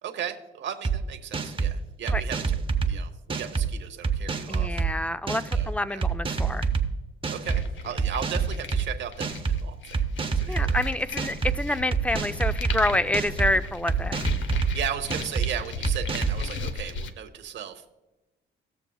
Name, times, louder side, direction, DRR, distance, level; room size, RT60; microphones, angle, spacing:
voice 1, 0.0-2.6 2.8-4.8 5.5-6.0 7.3-10.0 10.4-10.8 14.5-17.9, right 9 dB, 65° right, 6 dB, 1.0 m, -36 dB
sound 1, 0.8-1.0 1.3-1.7 2.1-2.9 3.3-3.7 4.0-4.9 5.3-5.6 6.0-6.9 7.2-7.6 8.0-8.8 9.2-9.6 9.9-10.8 11.2-11.5 11.9-12.8 13.1-13.5 13.9-14.7 15.1-15.5 15.8-16.4, right 5 dB, 25° right, 0.8 m, -26 dB
voice 2, 4.5-6.7 10.5-14.2, left 1 dB, 5° left, 13 dB, 0.4 m, -27 dB
sound 2, 7.4-17.1, left 4 dB, 70° left, 0.7 m, -37 dB
17.0 x 6.8 x 2.3 m, 1.1 s
cardioid pair, 90°, 20 cm